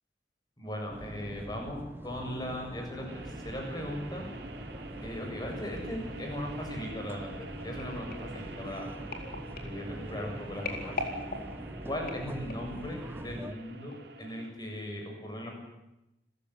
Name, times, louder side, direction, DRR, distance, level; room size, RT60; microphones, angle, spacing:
voice 1, 0.6-4.3 5.0-8.9 9.6-10.9 11.8-13.9 14.2-15.6, left 1 dB, 25° left, 2 dB, 7.4 m, -38 dB
sound 1, 0.9-13.5, right 1 dB, 15° right, 1.0 m, -43 dB
sound 2, 3.1-14.5, right 2 dB, 65° right, 3.3 m, -46 dB
sound 3, 7.8-12.8 13.4-13.6 13.9-14.0, left 2 dB, 55° left, 4.3 m, -41 dB
29.0 x 15.5 x 9.9 m, 0.91 s
head